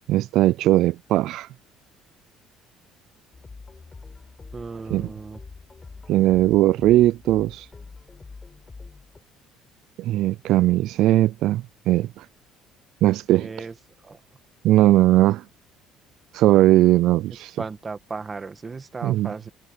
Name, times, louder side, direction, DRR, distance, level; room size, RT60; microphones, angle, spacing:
voice 1, 0.1-1.5 4.9-5.1 6.1-7.7 10.0-12.3 13.0-13.5 14.6-15.4 16.3-17.6 19.0-19.3, right 15 dB, 60° right, 0.3 m, -19 dB
sound 1, 3.3-9.2, left 4 dB, 20° left, 5.2 m, -44 dB
voice 2, 4.5-5.4 13.3-13.7 14.0-14.2 17.6-19.5, right 4 dB, 20° right, 1.5 m, -35 dB
cardioid pair, 150°, 0 cm